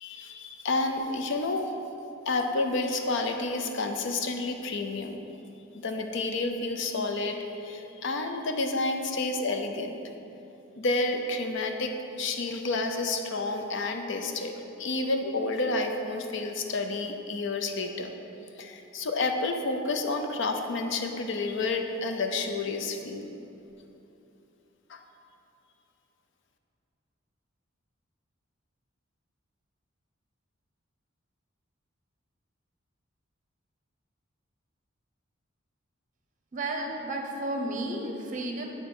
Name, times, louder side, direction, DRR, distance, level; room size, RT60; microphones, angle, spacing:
voice 1, 0.0-1.7 2.3-5.2 5.8-10.0 10.8-18.1 18.6-23.3 24.9-25.0, left 3 dB, 65° left, 5 dB, 0.6 m, -30 dB
voice 2, 36.5-38.7, right 1 dB, 40° right, 2 dB, 0.8 m, -32 dB
8.6 x 3.5 x 5.4 m, 2.9 s
head